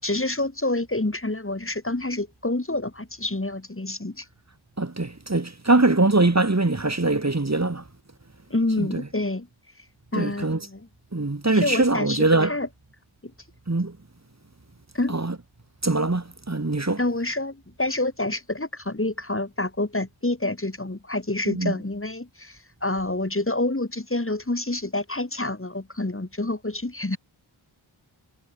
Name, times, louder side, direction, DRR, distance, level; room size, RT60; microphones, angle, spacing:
voice 1, 0.0-4.3 8.5-9.5 10.1-10.9 11.5-12.7 13.2-13.3 14.9-15.1 17.0-27.2, left 2 dB, 25° left, 7.1 m, -28 dB
voice 2, 4.8-7.8 8.8-9.0 10.1-10.6 11.1-12.6 13.7-13.9 15.1-15.4 15.8-17.0 21.5-21.7, right 2 dB, 35° right, 5.2 m, -22 dB
wide cardioid pair, 85°, 48 cm